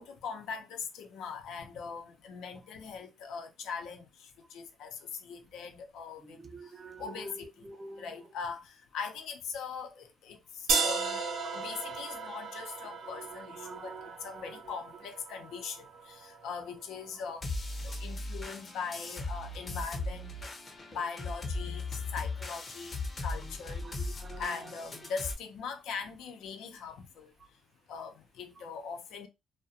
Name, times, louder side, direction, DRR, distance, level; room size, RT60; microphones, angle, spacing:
voice 1, 0.0-6.4 7.0-7.5 8.0-11.2 11.5-13.9 14.2-17.4 17.8-20.5 20.9-23.9 24.4-27.3 27.9-29.3, left 6 dB, 85° left, 0.5 m, -41 dB
voice 2, 6.2-8.3 11.4-11.6 13.0-14.8 17.9-18.1 23.3-24.7 27.4-27.5 28.6-28.7, right 3 dB, 40° right, 0.5 m, -48 dB
sound 1, 10.7-16.6, right 4 dB, 85° right, 0.6 m, -35 dB
sound 2, 17.4-25.3, left 2 dB, 35° left, 0.7 m, -38 dB
2.4 x 2.1 x 2.7 m
cardioid pair, 90°, 0 cm